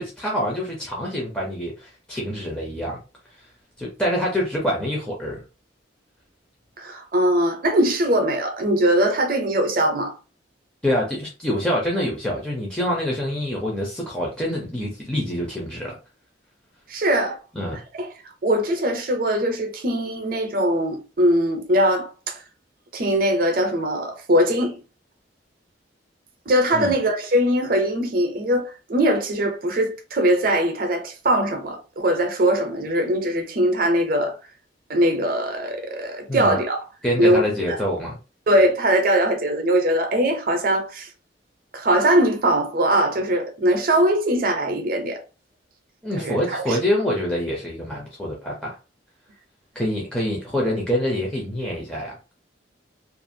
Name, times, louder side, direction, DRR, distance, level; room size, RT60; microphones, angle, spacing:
voice 1, 0.0-3.0 3.8-5.4 10.8-16.0 17.5-17.8 26.7-26.9 36.3-36.6 37.0-38.2 46.0-48.8 49.7-52.2, equal, 5° left, 0.5 m, -26 dB
voice 2, 6.8-10.1 16.9-17.4 17.9-18.1 18.4-22.3 22.9-24.8 26.5-28.6 28.9-34.3 34.9-36.8 37.2-37.8 38.5-41.1 41.7-45.2 46.2-46.8, right 1 dB, 45° right, 0.6 m, -21 dB
2.5 x 2.4 x 2.7 m
head